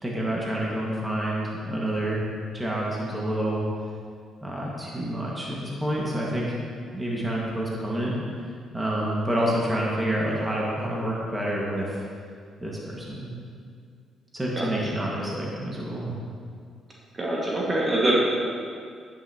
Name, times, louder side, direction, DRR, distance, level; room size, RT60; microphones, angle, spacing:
voice 1, 0.0-2.2 2.5-3.6 4.4-6.6 6.9-8.1 8.7-12.0 12.6-13.3 14.3-16.1, right 1 dB, 15° right, -4 dB, 2.0 m, -28 dB
voice 2, 17.1-18.2, right 1 dB, 30° right, -4 dB, 2.0 m, -24 dB
9.6 x 8.3 x 3.0 m, 2.2 s
hypercardioid pair, 45°, 0 cm